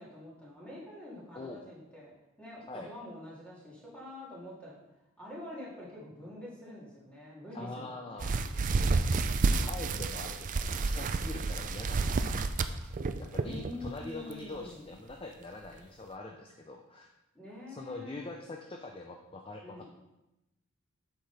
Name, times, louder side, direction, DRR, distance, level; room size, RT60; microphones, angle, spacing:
voice 1, 0.0-4.9 5.2-8.3 13.4-14.9 17.3-18.3 19.6-19.8, left 1 dB, 5° left, -7 dB, 2.5 m, -46 dB
voice 2, 7.5-8.4 9.6-17.1 17.7-19.8, left 2 dB, 25° left, 3 dB, 0.5 m, -44 dB
sound 1, 8.2-13.9 14.3-14.6 15.1-15.2 15.6-15.7, right 3 dB, 35° right, 0.3 m, -30 dB
8.1 x 5.8 x 4.1 m, 0.94 s
head